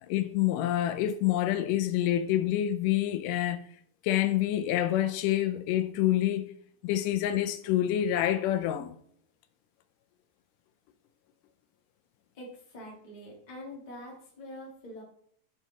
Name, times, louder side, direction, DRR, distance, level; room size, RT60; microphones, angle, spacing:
voice 1, 0.0-3.6 4.0-6.5 6.8-9.0, left 12 dB, 80° left, 2.1 m, -27 dB
voice 2, 12.3-15.0, left 1 dB, 25° left, 1.0 m, -45 dB
6.9 x 4.5 x 3.9 m
omnidirectional pair, 3.8 m